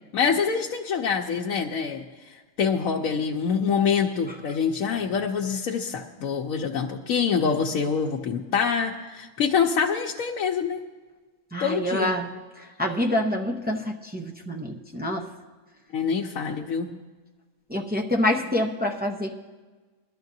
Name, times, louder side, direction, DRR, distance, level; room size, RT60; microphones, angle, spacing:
voice 1, 0.1-2.1 2.6-10.8 11.6-12.1 15.9-16.9, left 6 dB, 85° left, 0 dB, 1.1 m, -25 dB
voice 2, 11.5-12.3 12.8-15.3 17.7-19.3, left 1 dB, 10° right, 1 dB, 0.5 m, -26 dB
21.0 x 12.5 x 2.7 m, 1.3 s
omnidirectional pair, 1.4 m